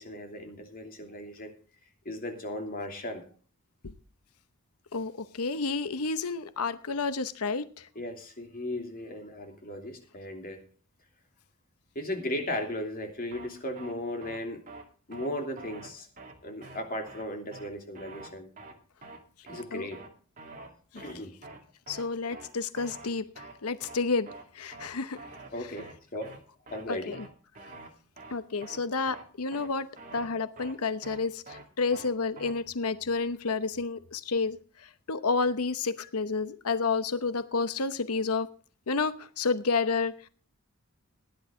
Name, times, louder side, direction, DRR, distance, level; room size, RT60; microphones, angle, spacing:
voice 1, 0.0-1.5 2.0-3.2 7.9-10.6 11.9-14.6 15.1-16.1 16.4-18.5 19.4-20.0 20.9-21.3 25.5-26.3 26.7-27.1, left 1 dB, 40° left, 2.8 m, -36 dB
voice 2, 4.9-7.9 19.7-19.9 20.9-21.0 21.9-24.3 24.5-25.2 26.9-27.3 28.3-38.5 38.9-40.1, left 4 dB, 90° left, 0.9 m, -30 dB
sound 1, 13.3-13.5 13.8-13.9 14.2-14.4 14.7-14.8 15.1-15.3 15.6-15.9 16.2-16.3 16.6-16.8 17.1-17.2 17.5-17.7 18.0-18.3 18.6-18.7 19.0-19.2 19.5-19.6 19.9-20.1 20.4-20.7 21.0-21.1 21.4-21.6 21.9-22.0 22.3-22.5 22.8-23.1 23.4-23.5 23.8-24.0 24.3-24.4 24.7-24.9 25.2-25.5 25.8-25.9 26.2-26.4 26.7-26.8 27.1-27.3 27.6-27.9 28.2-28.3 28.6-28.8 29.1-29.2 29.5-29.7 30.0-30.3 30.6-30.7 31.0-31.2 31.5-31.6 31.9-32.1 32.4-32.5, right 2 dB, 40° right, 2.4 m, -46 dB
16.5 x 10.5 x 3.7 m
head